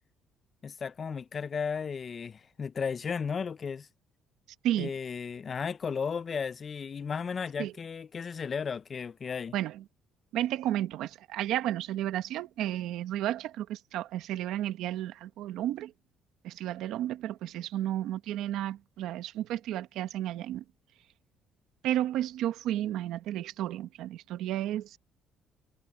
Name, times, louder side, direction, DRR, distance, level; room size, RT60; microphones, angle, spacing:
voice 1, 0.6-3.9 4.8-9.5, left 6 dB, 35° left, 0.5 m, -34 dB
voice 2, 9.5-9.8 10.3-15.9 16.4-20.6 21.8-25.0, right 12 dB, 80° right, 1.1 m, -32 dB
cardioid pair, 130°, 0 cm